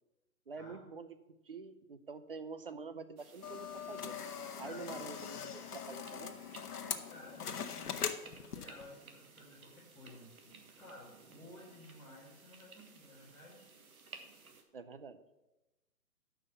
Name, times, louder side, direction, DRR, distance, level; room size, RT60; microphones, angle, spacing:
voice 1, 0.5-1.2 1.4-4.2 4.6-6.4 14.7-15.2, right 4 dB, 40° right, 11 dB, 0.5 m, -47 dB
sound 1, 3.2-14.6, right 4 dB, 65° right, 1.5 m, -58 dB
sound 2, 3.4-8.9, left 7 dB, 80° left, 1.0 m, -41 dB
voice 2, 4.6-5.3 7.1-13.6, left 2 dB, 5° left, -13 dB, 1.6 m, -55 dB
7.9 x 5.7 x 6.9 m, 0.99 s
hypercardioid pair, 160°, 46 cm